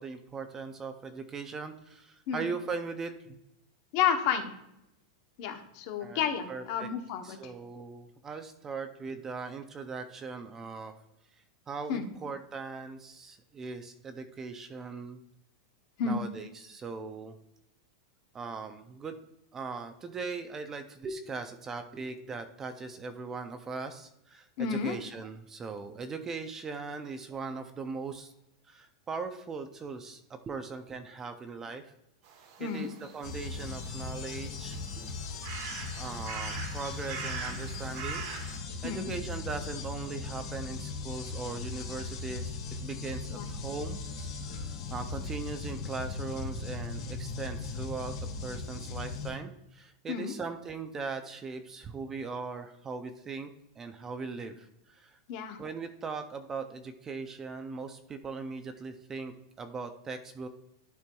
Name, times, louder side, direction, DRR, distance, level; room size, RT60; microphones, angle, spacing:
voice 1, 0.0-3.4 6.0-6.9 7.2-10.9 11.7-15.2 16.0-17.4 18.3-19.2 19.5-28.3 28.7-31.9 32.6-35.1 36.0-38.2 38.5-48.1 48.4-53.5 53.8-55.2 55.6-60.5, right 4 dB, 15° right, 8 dB, 0.4 m, -39 dB
voice 2, 3.9-4.5 5.4-7.5 11.9-12.1 16.0-16.2 24.6-25.0 32.6-32.9 38.8-39.1 43.3-43.5 50.1-50.4 55.3-55.6, left 7 dB, 40° left, 6 dB, 0.8 m, -31 dB
sound 1, 32.2-38.6, right 5 dB, 45° right, 1.0 m, -43 dB
sound 2, 33.2-49.3, left 4 dB, 70° left, 2.5 m, -38 dB
11.5 x 4.5 x 2.2 m, 0.83 s
supercardioid pair, 170°, 3 cm